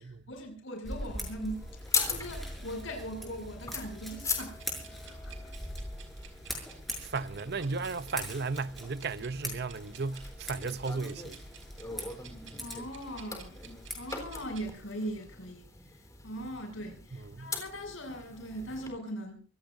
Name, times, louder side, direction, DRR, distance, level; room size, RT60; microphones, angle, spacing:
voice 1, 0.0-5.5 12.6-13.7 13.9-16.0 16.2-19.4, equal, 80° left, 7.5 m, -40 dB
Scissors, 0.8-14.5, equal, ahead, 6.4 m, -43 dB
sound 1, 1.5-18.9, left 4 dB, 15° left, 3.9 m, -41 dB
sound 2, 4.3-14.7, right 3 dB, 75° right, 4.8 m, -52 dB
voice 2, 7.0-11.4 17.1-17.6, right 4 dB, 55° right, 0.7 m, -35 dB
26.0 x 17.5 x 2.7 m
head